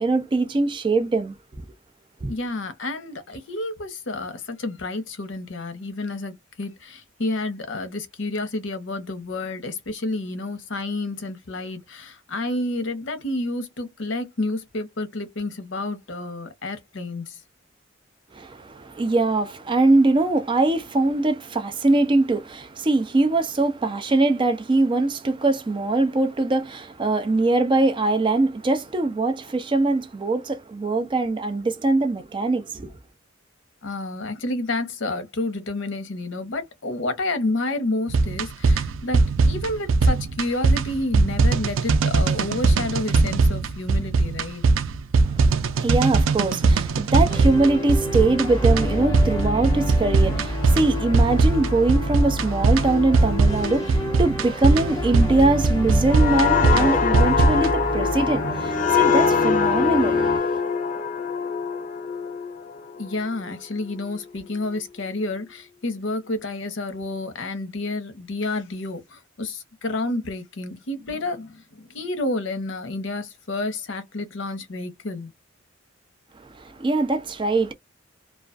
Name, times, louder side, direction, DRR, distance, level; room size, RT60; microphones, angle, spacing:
voice 1, 0.0-1.6 2.2-2.3 18.3-32.9 45.3-60.6 76.6-77.7, right 2 dB, 25° right, 0.4 m, -22 dB
voice 2, 2.3-17.4 33.8-44.6 63.0-75.3, left 2 dB, 70° left, 0.8 m, -30 dB
sound 1, 38.1-57.7, right 3 dB, 85° right, 0.4 m, -20 dB
sound 2, 47.3-60.4, equal, 20° left, 1.0 m, -29 dB
sound 3, 56.1-63.5 63.9-64.2, left 6 dB, 40° left, 0.4 m, -23 dB
2.3 x 2.3 x 2.4 m
head